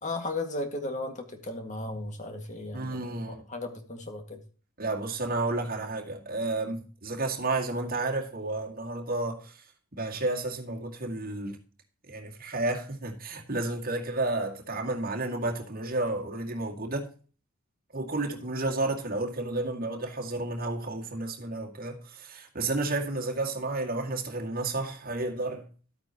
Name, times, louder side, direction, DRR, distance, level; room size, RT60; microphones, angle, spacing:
voice 1, 0.0-3.1 3.5-4.4, left 2 dB, 35° left, 1.9 m, -35 dB
voice 2, 2.7-3.4 4.8-9.6 9.9-11.6 12.1-17.1 17.9-25.7, right 2 dB, 40° right, 2.1 m, -31 dB
12.5 x 8.7 x 2.9 m
head